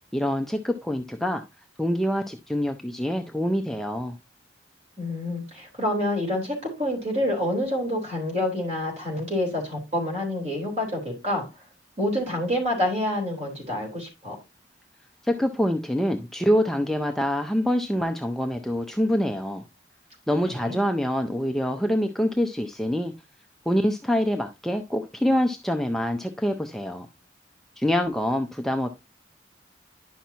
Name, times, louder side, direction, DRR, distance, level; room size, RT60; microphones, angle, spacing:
voice 1, 0.1-1.4 1.8-4.2 15.2-19.6 20.3-23.1 23.7-27.1 27.8-28.9, equal, ahead, 0.4 m, -25 dB
voice 2, 5.0-11.5 12.0-14.3 20.5-20.8, left 1 dB, 40° right, 3.6 m, -27 dB
10.0 x 5.8 x 2.7 m
head